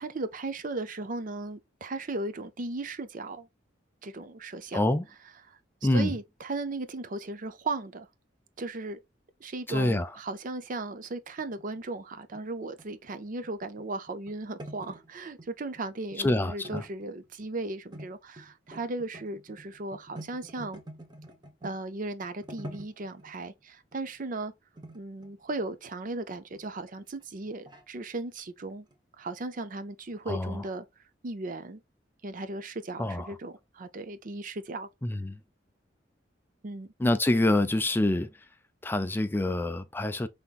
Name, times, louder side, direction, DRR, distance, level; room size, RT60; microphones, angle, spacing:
voice 1, 0.0-3.5 4.0-4.8 5.5-5.6 5.9-8.1 8.6-9.0 9.4-20.8 21.6-24.5 24.9-28.9 29.2-30.9 31.2-31.8 32.2-34.9 36.6-36.9, right 2 dB, 45° right, 0.6 m, -36 dB
voice 2, 4.7-5.0 5.8-6.1 9.7-10.1 16.2-16.8 30.3-30.6 33.0-33.4 35.0-35.4 37.0-38.3 38.8-40.3, left 1 dB, 10° left, 0.4 m, -26 dB
sound 1, 11.4-15.5 15.8-16.4 16.6-17.6 17.9-18.1 18.4-21.8 22.2-23.3 23.9-24.1 24.8-26.0 26.5-26.6 27.2-27.9 28.7-28.9 29.2-29.3 29.6-29.7 30.1-30.2, right 1 dB, 25° right, 1.1 m, -47 dB
5.7 x 3.5 x 2.4 m
head